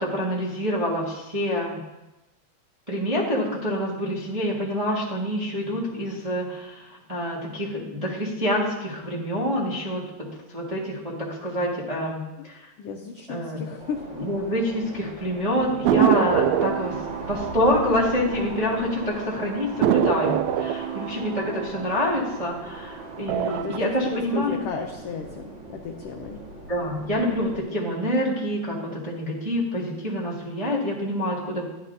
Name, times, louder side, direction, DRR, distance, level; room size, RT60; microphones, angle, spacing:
voice 1, 0.0-1.8 2.9-12.6 13.3-13.6 14.1-24.6 26.7-31.6, equal, 20° right, -6 dB, 1.0 m, -27 dB
voice 2, 12.8-14.0 23.4-26.4, left 5 dB, 75° left, 2 dB, 1.4 m, -34 dB
sound 1, 13.8-27.6, right 2 dB, 45° right, 2.1 m, -40 dB
sound 2, 15.9-18.9 19.2-19.3 19.8-22.8 23.2-23.8, right 9 dB, 80° right, 1.7 m, -25 dB
12.0 x 10.5 x 2.7 m, 0.99 s
omnidirectional pair, 3.4 m